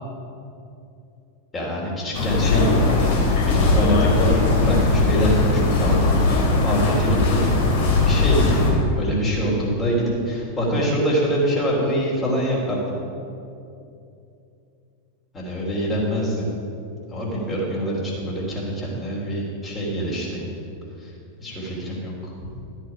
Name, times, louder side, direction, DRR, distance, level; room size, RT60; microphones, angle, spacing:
voice 1, 1.5-3.2 3.4-7.5 8.0-12.9 15.3-16.5 17.1-20.5 21.0-21.1 21.4-22.3, equal, 20° left, -5 dB, 3.2 m, -24 dB
sound 1, 2.1-8.7, left 3 dB, 55° left, 2.6 m, -19 dB
12.5 x 9.2 x 5.0 m, 2.7 s
figure-of-eight pair, 90°, 0 cm